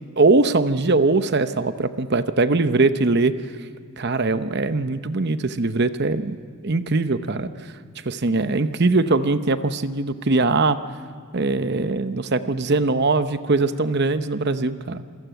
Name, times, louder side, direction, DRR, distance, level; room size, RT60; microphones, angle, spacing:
voice 1, 0.2-3.3 4.0-6.4 6.6-7.5 8.0-10.8 11.3-15.0, right 3 dB, 50° right, 11 dB, 0.8 m, -21 dB
27.0 x 15.0 x 9.1 m, 2.1 s
head